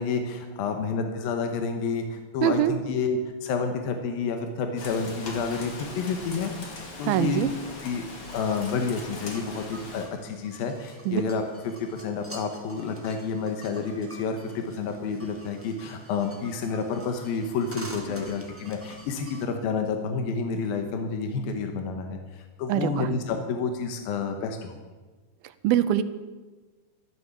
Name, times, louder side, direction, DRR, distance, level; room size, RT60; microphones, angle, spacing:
voice 1, 0.0-6.5 7.0-7.4 7.8-8.0 8.3-24.8, left 5 dB, 85° left, 5 dB, 3.0 m, -29 dB
voice 2, 2.4-2.7 7.1-7.5 11.1-11.2 22.7-23.1 25.6-26.0, right 11 dB, 85° right, 12 dB, 2.6 m, -23 dB
Rain, 4.8-10.1, left 2 dB, 40° left, 2.9 m, -40 dB
sound 1, 8.1-19.5, right 1 dB, 10° right, 0.7 m, -47 dB
13.5 x 13.0 x 7.3 m, 1.3 s
omnidirectional pair, 4.2 m